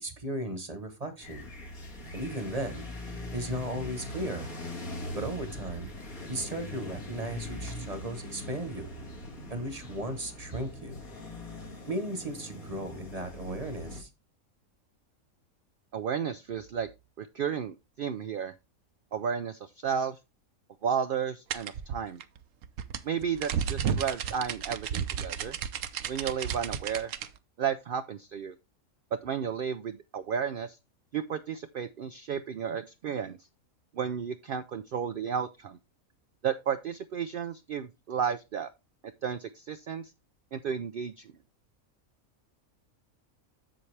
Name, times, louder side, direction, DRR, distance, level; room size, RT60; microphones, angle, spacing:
voice 1, 0.0-1.5 2.1-2.8 3.3-4.5 5.1-5.9 6.3-8.9 9.5-10.9 11.9-14.1, right 1 dB, 30° right, 9 dB, 1.0 m, -36 dB
sound 1, 1.2-14.0, left 1 dB, 80° left, 2.5 m, -41 dB
voice 2, 15.9-16.9 17.2-18.5 19.1-20.2 20.8-22.2 23.0-25.6 26.1-27.1 27.6-28.5 29.2-30.8 31.1-33.4 33.9-35.8 36.4-38.7 39.2-40.1 40.5-41.3, right 7 dB, 85° right, 12 dB, 0.4 m, -33 dB
sound 2, 21.5-27.3, right 8 dB, 70° right, 1.0 m, -33 dB
7.7 x 7.0 x 3.3 m, 0.24 s
omnidirectional pair, 1.5 m